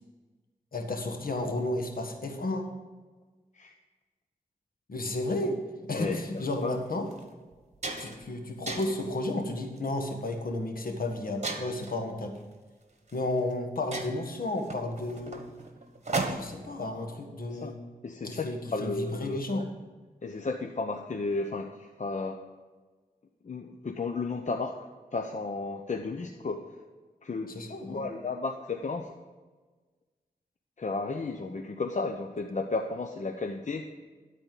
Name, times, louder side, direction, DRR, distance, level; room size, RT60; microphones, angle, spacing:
voice 1, 0.7-2.7 4.9-7.1 8.0-12.3 13.1-15.4 16.3-17.8 18.2-19.7 27.5-28.1, left 2 dB, 70° left, 4 dB, 1.5 m, -32 dB
voice 2, 5.9-6.8 17.5-17.7 18.0-19.6 20.2-22.4 23.4-24.7 25.1-26.6 27.2-29.1 30.8-33.9, left 3 dB, 50° left, 4 dB, 0.8 m, -33 dB
sound 1, 6.4-6.5 7.1-7.2 7.5-8.3 8.7-9.1 9.8-10.1 11.4-12.0 13.1-13.2 13.5-13.6 13.9-16.7, right 3 dB, 45° right, 1.3 m, -35 dB
12.5 x 4.3 x 7.6 m, 1.3 s
cardioid pair, 45°, 15 cm